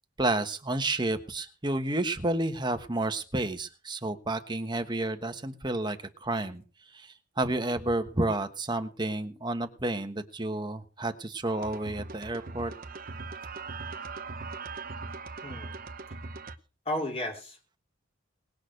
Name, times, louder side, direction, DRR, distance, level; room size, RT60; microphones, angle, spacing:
voice 1, 0.2-6.6 6.9-12.7, right 2 dB, 20° right, 8 dB, 1.2 m, -30 dB
sound 1, 11.5-16.6, right 4 dB, 45° right, 0.9 m, -40 dB
voice 2, 15.4-15.8 16.8-17.8, left 1 dB, 30° left, 2 dB, 3.0 m, -34 dB
19.5 x 6.6 x 6.5 m, 0.36 s
head